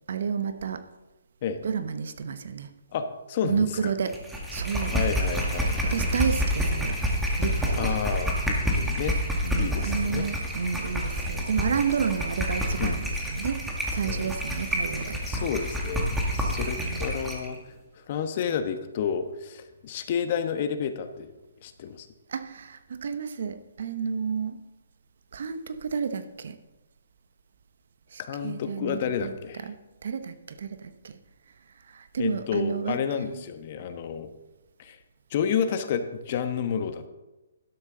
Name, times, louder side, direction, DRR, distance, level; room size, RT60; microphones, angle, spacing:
voice 1, 0.1-0.9 1.6-2.7 3.4-4.2 4.5-5.0 5.6-7.0 7.4-7.9 9.4-15.5 16.8-17.1 22.3-24.6 25.3-26.6 28.1-31.2 31.9-33.3, right 6 dB, 65° right, 11 dB, 0.9 m, -31 dB
voice 2, 2.9-3.8 4.9-6.0 7.8-9.2 9.6-10.3 12.8-13.0 14.0-14.3 15.3-17.6 18.1-21.3 21.6-22.1 28.2-29.7 32.2-34.3 34.8-35.0 35.3-37.1, left 7 dB, 45° left, 9 dB, 1.1 m, -30 dB
sound 1, 4.1-17.5, equal, 5° right, 1.8 m, -28 dB
12.0 x 11.5 x 3.9 m, 1.1 s
hypercardioid pair, 145°, 0 cm